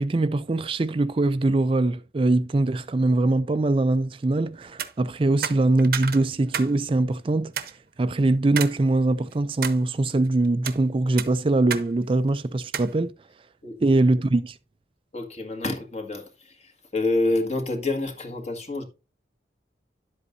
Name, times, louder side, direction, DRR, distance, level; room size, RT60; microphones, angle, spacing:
voice 1, 0.0-13.1 13.8-14.6, right 2 dB, 30° right, 0.4 m, -22 dB
sound 1, 4.7-4.9 5.4-6.7 7.1-7.2 7.6-7.7 8.6-8.8 9.2-9.8 10.4-10.8 11.2-11.9 12.1-12.2 12.7-12.9, right 8 dB, 55° right, 0.8 m, -30 dB
voice 2, 15.1-18.8, left 2 dB, 35° left, 1.8 m, -28 dB
11.0 x 8.0 x 2.6 m
head